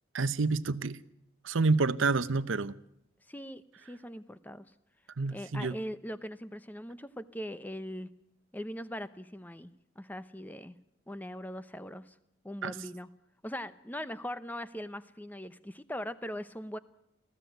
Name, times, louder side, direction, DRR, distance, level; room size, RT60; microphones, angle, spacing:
voice 1, 0.1-1.0 1.4-2.8 5.2-5.8 12.6-12.7, right 3 dB, 75° right, 0.8 m, -28 dB
voice 2, 3.3-4.7 5.3-8.1 8.5-9.7 10.0-10.8 11.1-12.2 12.4-13.1 13.4-16.8, equal, 10° left, 0.7 m, -40 dB
20.5 x 15.0 x 9.3 m
head